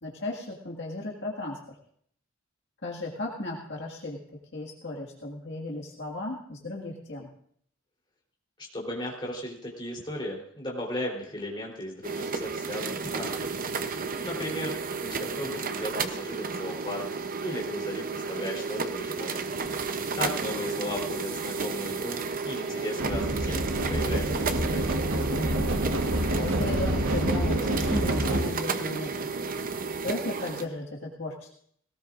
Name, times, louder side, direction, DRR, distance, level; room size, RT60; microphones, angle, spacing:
voice 1, 0.0-1.8 2.8-4.2 4.5-7.3 25.3-25.7 26.1-29.3 30.0-31.5, left 2 dB, 55° left, -2 dB, 1.9 m, -35 dB
voice 2, 8.7-14.7 15.0-25.0, left 1 dB, 20° left, -3 dB, 3.6 m, -36 dB
sound 1, 12.0-30.7, right 4 dB, 40° right, 0.8 m, -32 dB
sound 2, 23.0-28.5, right 1 dB, 75° right, 1.4 m, -27 dB
19.5 x 18.0 x 2.5 m, 0.64 s
head